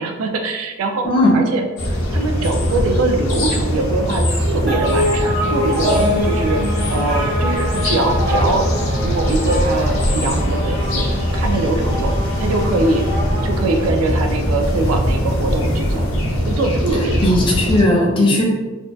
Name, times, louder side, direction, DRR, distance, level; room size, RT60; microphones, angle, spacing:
voice 1, 0.0-1.1 1.3-6.6 6.9-8.7 9.0-11.0 11.3-12.1 12.4-13.1 13.4-16.1 16.5-17.5 18.2-18.4, right 2 dB, 85° right, 4 dB, 0.3 m, -22 dB
voice 2, 1.0-1.4 17.2-18.4, left 1 dB, 25° left, -2 dB, 0.5 m, -15 dB
sound 1, 1.8-17.8, equal, 85° left, 0.7 m, -21 dB
sound 2, 4.7-14.5, equal, 55° right, 0.9 m, -25 dB
2.5 x 2.2 x 2.2 m, 1.2 s
head